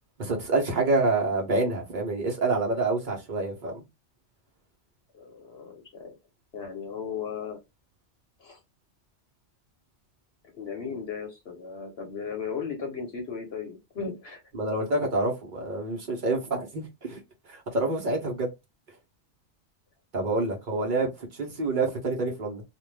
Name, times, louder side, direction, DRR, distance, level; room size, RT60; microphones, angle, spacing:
voice 1, 0.2-3.8 14.5-17.2 17.5-18.5 20.1-22.6, right 2 dB, 45° right, 1.1 m, -27 dB
voice 2, 5.1-6.2 6.5-7.6 8.4-8.6 10.5-14.4 20.7-20.8, left 6 dB, 65° left, 1.0 m, -36 dB
2.5 x 2.5 x 3.2 m
omnidirectional pair, 1.2 m